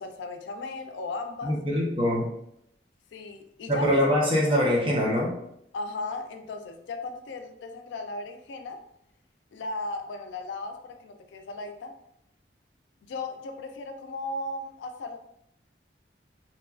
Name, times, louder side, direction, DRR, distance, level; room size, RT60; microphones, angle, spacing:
voice 1, 0.0-1.5 3.1-4.0 5.7-8.8 9.5-11.9 13.0-15.2, left 2 dB, 90° left, 6 dB, 0.3 m, -36 dB
voice 2, 1.4-2.3 3.7-5.3, equal, 30° right, -3 dB, 0.7 m, -23 dB
2.9 x 2.3 x 2.4 m, 0.77 s
head